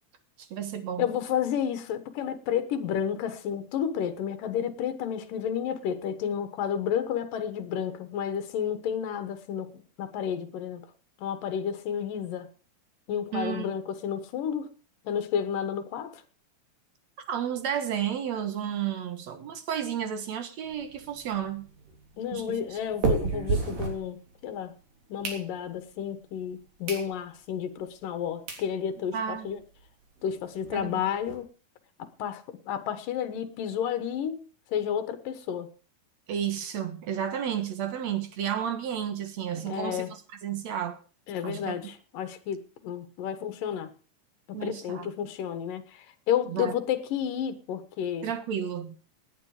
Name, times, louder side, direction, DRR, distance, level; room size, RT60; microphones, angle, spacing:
voice 1, 0.4-1.1 13.3-13.7 17.3-21.7 22.3-22.8 29.1-29.5 30.7-31.1 36.3-41.0 41.4-41.7 44.5-45.1 46.5-46.7 48.2-49.0, right 9 dB, 60° right, 9 dB, 2.4 m, -32 dB
voice 2, 1.0-10.8 11.2-12.5 13.1-14.7 15.1-16.2 22.2-24.2 24.4-24.7 25.1-29.6 30.2-31.5 32.0-34.4 34.7-35.7 39.7-40.1 41.3-43.9 44.5-48.3, left 8 dB, 80° left, 11 dB, 3.1 m, -31 dB
sound 1, 20.7-24.6 25.0-25.9 26.4-26.5 26.8-27.1 27.5-27.6 28.2-28.3 28.5-28.7 29.1-29.2 29.4-29.5 29.8-29.9 30.2-31.4, right 4 dB, 75° right, 4.9 m, -33 dB
18.0 x 9.6 x 4.9 m, 0.38 s
omnidirectional pair, 3.8 m